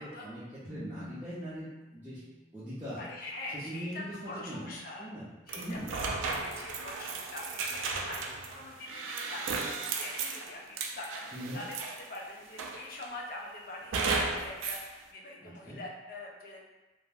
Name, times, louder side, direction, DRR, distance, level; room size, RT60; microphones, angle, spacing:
voice 1, 0.0-2.2 2.5-3.0 3.5-5.9 11.3-11.6 15.4-15.8, equal, 10° right, -13 dB, 0.5 m, -41 dB
sound 1, 0.6-4.2, equal, 80° left, 1.0 m, -50 dB
voice 2, 3.0-5.1 5.5-11.3 11.5-11.8 12.1-16.7, left 2 dB, 50° left, -1 dB, 0.4 m, -44 dB
sound 2, 5.5-12.2 12.6-13.2 13.9-14.9, right 4 dB, 90° right, 0.3 m, -35 dB
2.3 x 2.1 x 3.3 m, 1.1 s
head